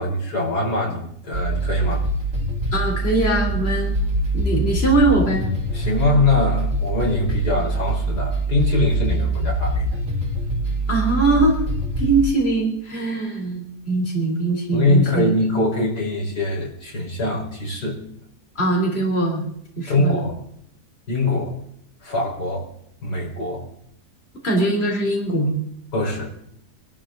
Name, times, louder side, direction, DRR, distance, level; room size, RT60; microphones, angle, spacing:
voice 1, 0.0-2.0 5.7-9.9 14.7-18.0 19.9-20.3 21.1-21.5 22.0-22.7 23.0-23.6 25.9-26.3, left 2 dB, 75° left, -2 dB, 5.5 m, -22 dB
sound 1, 1.3-12.2, right 2 dB, 50° right, 4.1 m, -24 dB
voice 2, 2.7-3.9 4.3-5.4 10.9-11.6 12.0-15.3 18.6-19.4 19.8-20.2 24.4-25.6, right 2 dB, 35° left, -1 dB, 4.0 m, -21 dB
25.0 x 12.5 x 4.0 m, 0.71 s
omnidirectional pair, 1.7 m